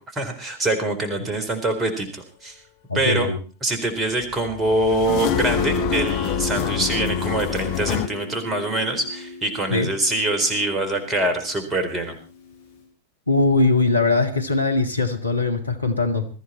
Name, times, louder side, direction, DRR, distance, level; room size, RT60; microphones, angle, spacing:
voice 1, 0.1-2.6 2.9-3.3 3.6-12.1, right 2 dB, 20° right, 7 dB, 4.2 m, -24 dB
voice 2, 2.9-3.4 9.7-9.9 13.3-16.3, left 3 dB, 85° left, 6 dB, 1.9 m, -21 dB
sound 1, 4.2-8.1, left 13 dB, 45° left, 1.1 m, -26 dB
Guitar, 5.1-12.8, left 2 dB, 65° left, 5.6 m, -32 dB
21.0 x 14.5 x 4.3 m, 0.37 s
figure-of-eight pair, 90°, 0 cm